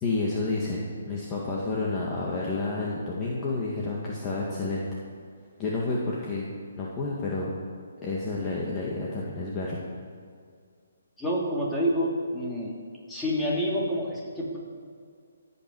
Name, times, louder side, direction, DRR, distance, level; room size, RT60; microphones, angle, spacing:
voice 1, 0.0-4.9 5.6-6.5 6.8-7.5 8.0-9.8, left 3 dB, 20° left, -5 dB, 1.9 m, -30 dB
voice 2, 11.2-12.8 13.1-14.6, equal, 5° left, -5 dB, 3.0 m, -28 dB
23.0 x 8.8 x 4.8 m, 2.2 s
hypercardioid pair, 155°, 0 cm